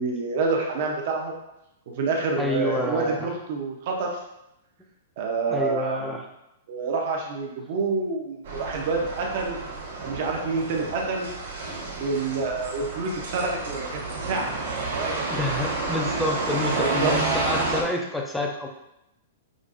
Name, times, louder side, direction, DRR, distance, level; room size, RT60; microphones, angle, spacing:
voice 1, 0.0-1.3 2.0-4.1 5.2-6.0 6.7-9.6 10.0-11.3 12.0-15.3 16.7-17.1, right 4 dB, 40° right, 0 dB, 0.6 m, -28 dB
voice 2, 2.4-3.2 5.5-6.2 15.3-18.7, left 1 dB, 5° left, 0 dB, 0.3 m, -28 dB
sound 1, 8.4-17.8, right 3 dB, 65° right, 1.1 m, -30 dB
5.0 x 2.3 x 2.5 m, 0.85 s
hypercardioid pair, 175°, 0 cm